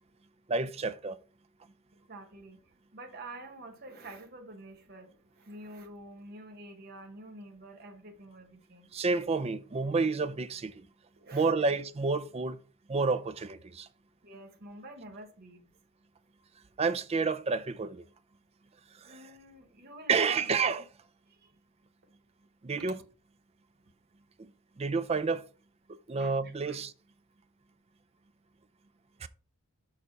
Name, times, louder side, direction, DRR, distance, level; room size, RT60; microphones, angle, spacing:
voice 1, 0.5-1.2 8.9-10.9 11.3-12.6 12.9-13.9 16.8-18.0 19.0-19.2 20.1-20.8 22.6-23.0 24.4-24.5 24.8-25.4 25.9-26.9 29.2-29.3, right 4 dB, 25° right, 0.4 m, -29 dB
voice 2, 2.1-8.9 11.2-11.7 14.2-15.7 19.0-20.5 21.3-21.5 22.8-23.0 26.2-26.8, right 1 dB, 45° right, 1.0 m, -48 dB
6.7 x 4.9 x 4.1 m
head